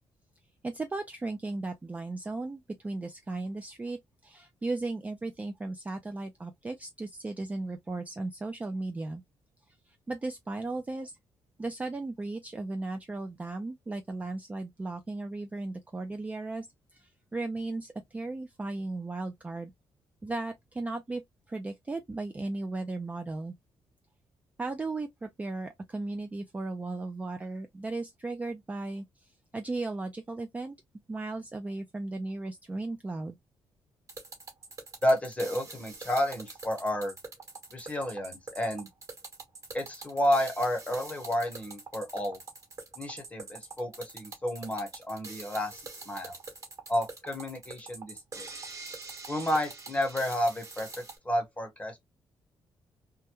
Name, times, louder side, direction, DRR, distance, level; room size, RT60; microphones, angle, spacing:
voice 1, 0.6-9.2 9.9-11.2 11.6-16.7 16.9-19.7 20.2-21.2 21.5-23.5 24.6-30.8 31.1-33.4, right 2 dB, 15° right, 0.3 m, -36 dB
sound 1, 34.1-51.2, right 3 dB, 35° right, 1.2 m, -44 dB
voice 2, 35.0-37.1 37.7-38.9 39.7-42.4 43.0-46.4 46.9-48.5 49.3-50.9 51.2-52.0, left 1 dB, 15° left, 1.0 m, -31 dB
2.2 x 2.1 x 2.9 m
cardioid pair, 130°, 9 cm